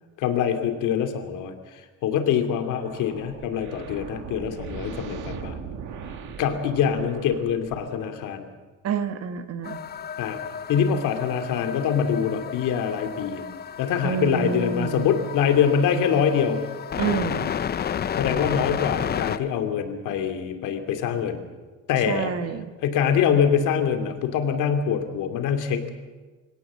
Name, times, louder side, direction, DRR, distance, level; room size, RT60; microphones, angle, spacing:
voice 1, 0.2-1.5 2.0-5.5 6.4-8.5 10.2-10.4 10.7-13.4 13.8-16.6 18.2-21.4 21.9-22.3 22.8-25.9, left 7 dB, 85° left, 6 dB, 2.9 m, -24 dB
sound 1, 2.5-8.0, right 6 dB, 75° right, 2.3 m, -39 dB
voice 2, 8.8-9.8 14.0-15.1 17.0-17.5 22.1-22.7, right 6 dB, 55° right, 9 dB, 1.6 m, -28 dB
sound 2, 9.6-19.4, left 8 dB, 35° left, 0.6 m, -32 dB
25.0 x 17.5 x 7.6 m, 1.3 s
cardioid pair, 150°, 30 cm